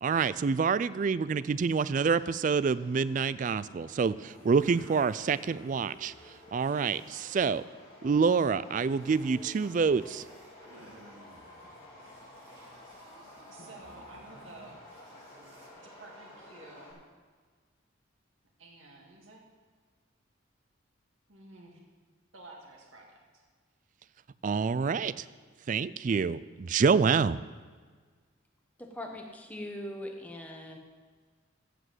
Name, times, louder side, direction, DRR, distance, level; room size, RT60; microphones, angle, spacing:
voice 1, 0.0-6.1 6.5-7.6 8.0-10.2 24.4-25.2 25.7-27.4, right 5 dB, 40° right, 17 dB, 0.3 m, -27 dB
Subway metro underground, 0.8-16.9, left 1 dB, 30° left, 4.3 m, -53 dB
sound 1, 4.3-7.6 8.0-8.3 8.8-15.7, right 1 dB, 65° right, 2.4 m, -57 dB
voice 2, 13.5-14.8 15.8-17.0 18.6-19.5 21.3-21.8 22.3-23.4, right 2 dB, 85° right, -1 dB, 2.1 m, -51 dB
voice 3, 28.8-30.8, left 1 dB, 5° left, 2 dB, 1.2 m, -41 dB
15.0 x 5.1 x 7.9 m, 1.5 s
head